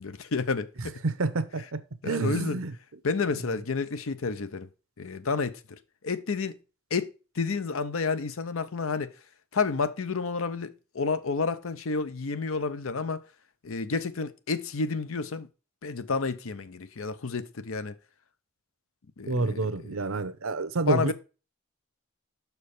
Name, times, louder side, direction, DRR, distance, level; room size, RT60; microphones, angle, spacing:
voice 1, 0.0-1.0 2.0-2.6 3.0-4.7 5.0-5.8 6.0-6.6 6.9-7.1 7.4-9.1 9.5-13.2 13.6-15.5 15.8-17.9 19.2-20.2 20.8-21.1, left 4 dB, 75° left, 0.7 m, -30 dB
voice 2, 1.0-2.7 19.3-21.1, right 3 dB, 75° right, 0.8 m, -28 dB
6.6 x 4.6 x 4.8 m
head